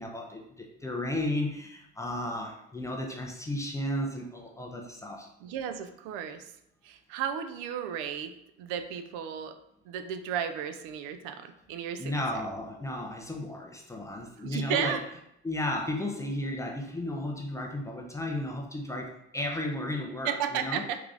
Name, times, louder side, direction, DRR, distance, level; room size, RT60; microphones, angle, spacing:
voice 1, 0.0-5.3 12.0-15.0 15.4-20.8, left 1 dB, 10° left, 1 dB, 0.4 m, -34 dB
voice 2, 5.4-6.5 6.8-8.3 8.6-9.6 9.9-12.2 14.4-15.0 20.2-21.0, right 8 dB, 75° right, 8 dB, 0.5 m, -34 dB
3.7 x 2.4 x 3.2 m, 0.79 s
supercardioid pair, 110°, 32 cm